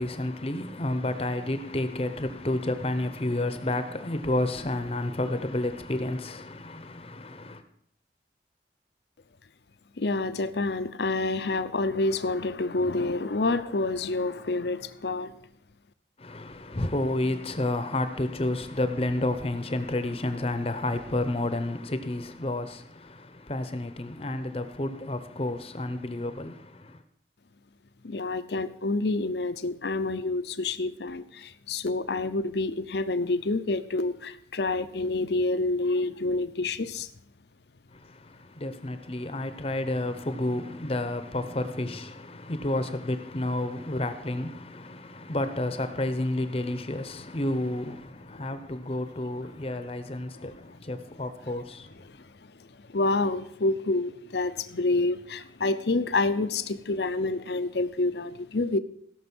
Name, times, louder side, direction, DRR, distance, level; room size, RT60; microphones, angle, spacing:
voice 1, 0.0-7.6 16.2-27.0 37.9-52.1, left 1 dB, 30° left, 0.8 m, -30 dB
voice 2, 10.0-15.3 28.0-37.1 52.1-52.5 52.9-58.8, left 2 dB, 70° left, 0.7 m, -28 dB
16.5 x 6.3 x 6.2 m
head